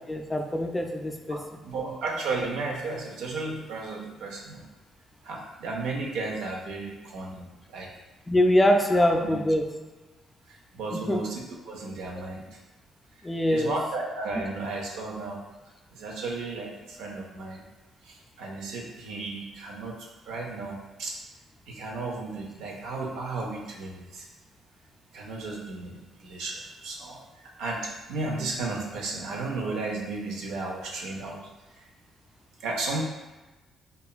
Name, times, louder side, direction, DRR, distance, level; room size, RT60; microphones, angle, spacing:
voice 1, 0.1-1.4 8.3-9.7 10.9-11.2 13.2-13.7, left 1 dB, 15° left, 3 dB, 0.3 m, -23 dB
voice 2, 1.3-4.6 5.2-7.4 7.7-7.9 9.0-9.4 10.5-12.4 13.5-15.4 15.9-17.6 18.0-21.2 21.7-24.3 25.1-31.4 32.6-33.0, right 3 dB, 90° right, -1 dB, 0.4 m, -34 dB
2.9 x 2.2 x 2.3 m, 1.2 s
cardioid pair, 90°, 0 cm